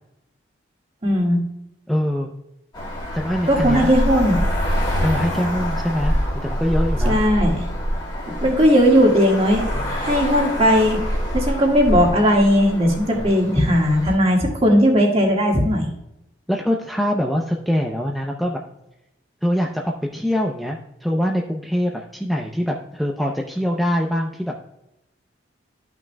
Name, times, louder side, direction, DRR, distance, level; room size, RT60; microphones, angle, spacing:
voice 1, 1.0-1.4 3.5-4.4 7.0-7.6 8.4-11.0 11.3-15.9, equal, 30° right, 0 dB, 1.7 m, -17 dB
voice 2, 1.9-2.3 3.1-3.9 5.0-6.2 6.4-7.2 9.7-10.2 13.1-13.3 13.7-13.8 16.5-18.6 19.4-24.7, equal, ahead, 0 dB, 0.5 m, -24 dB
Traffic noise roadway noise, 2.7-14.2, equal, 25° left, 1.9 m, -25 dB
13.0 x 5.9 x 2.2 m, 0.87 s
head